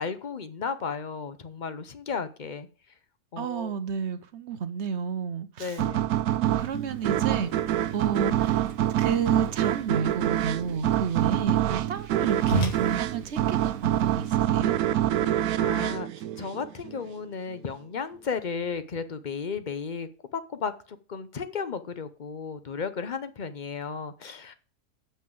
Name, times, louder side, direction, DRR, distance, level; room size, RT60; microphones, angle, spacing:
voice 1, 0.0-2.7 3.3-3.7 5.6-6.0 15.2-16.1 16.4-24.5, left 5 dB, 40° left, 0.8 m, -34 dB
voice 2, 3.4-5.9 6.2-7.5 7.9-14.8, right 7 dB, 60° right, 1.0 m, -31 dB
sound 1, 5.8-17.1, right 12 dB, 85° right, 1.1 m, -26 dB
Whoosh swoosh swish, 6.6-14.3, equal, 75° left, 2.3 m, -39 dB
7.9 x 5.6 x 7.6 m
omnidirectional pair, 1.5 m